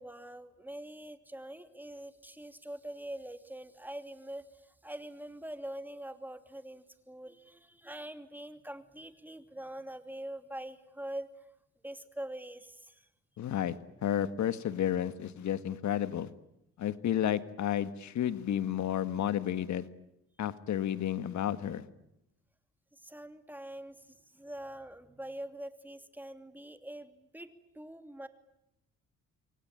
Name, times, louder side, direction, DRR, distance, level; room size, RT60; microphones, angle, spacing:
voice 1, 0.0-11.4 11.8-13.1 22.9-28.3, right 1 dB, 5° right, 8 dB, 2.8 m, -44 dB
voice 2, 13.4-13.7 14.0-16.3 16.8-19.9 20.4-21.8, left 10 dB, 70° left, 12 dB, 1.7 m, -31 dB
28.0 x 23.0 x 9.0 m, 0.85 s
cardioid pair, 90°, 30 cm